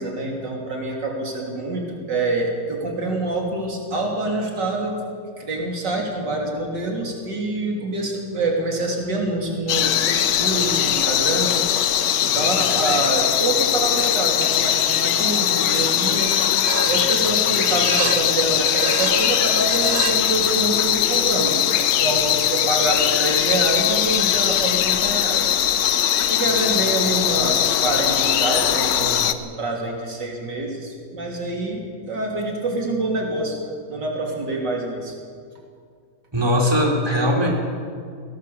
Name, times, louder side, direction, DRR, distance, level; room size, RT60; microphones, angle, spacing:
voice 1, 0.0-5.0 5.4-11.8 12.2-16.3 16.8-25.6 26.2-33.6 33.9-35.1, right 2 dB, 90° right, 0 dB, 3.8 m, -26 dB
sound 1, 9.7-29.3, left 10 dB, 85° left, 1.5 m, -20 dB
sound 2, 14.4-15.0 15.3-15.8 16.2-20.2, right 6 dB, 65° right, 1.5 m, -31 dB
voice 2, 36.3-37.5, equal, 15° right, -1 dB, 3.7 m, -19 dB
21.5 x 17.5 x 7.1 m, 2.2 s
omnidirectional pair, 1.8 m